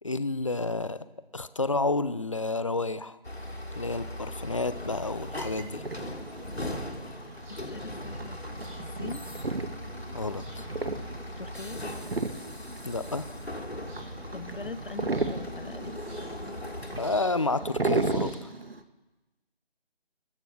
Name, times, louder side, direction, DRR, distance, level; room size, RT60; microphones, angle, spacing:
voice 1, 0.0-1.1 1.3-3.2 3.7-5.8 10.1-10.7 12.8-13.3 17.0-18.5, left 3 dB, 30° left, 15 dB, 0.7 m, -30 dB
sound 1, 3.2-17.2, left 1 dB, 90° left, 3.4 m, -39 dB
sound 2, 5.9-18.8, right 3 dB, 70° right, 1.9 m, -35 dB
sound 3, 7.4-18.6, right 1 dB, 15° right, 5.5 m, -56 dB
voice 2, 7.5-8.4 9.0-9.2 11.4-11.8 14.3-15.9, left 3 dB, 55° left, 15 dB, 1.1 m, -41 dB
29.5 x 14.5 x 6.3 m, 1.1 s
figure-of-eight pair, 160°, 31 cm